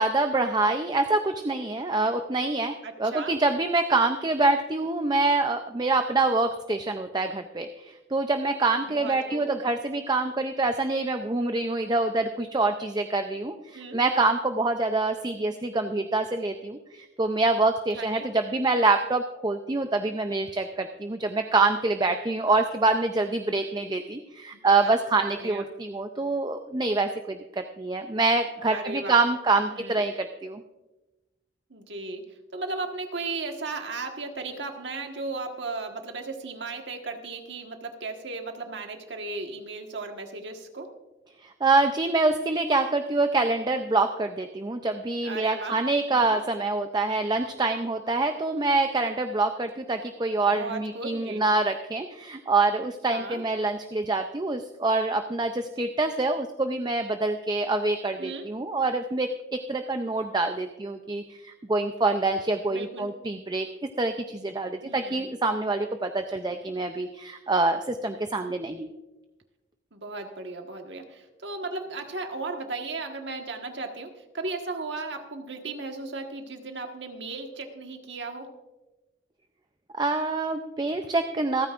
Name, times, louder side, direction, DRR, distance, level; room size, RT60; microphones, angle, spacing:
voice 1, 0.0-30.6 41.4-68.9 79.9-81.7, right 3 dB, 20° right, 7 dB, 0.5 m, -26 dB
voice 2, 2.8-3.3 8.8-9.5 13.7-14.0 17.9-18.3 24.5-25.7 28.6-29.2 29.7-30.0 31.7-32.2 32.5-40.9 45.2-45.8 46.1-46.4 50.5-51.4 53.1-53.4 58.2-58.5 62.7-63.1 64.8-65.3 69.9-78.5, right 3 dB, 65° right, 4 dB, 1.5 m, -36 dB
27.0 x 9.4 x 2.5 m, 1.1 s
head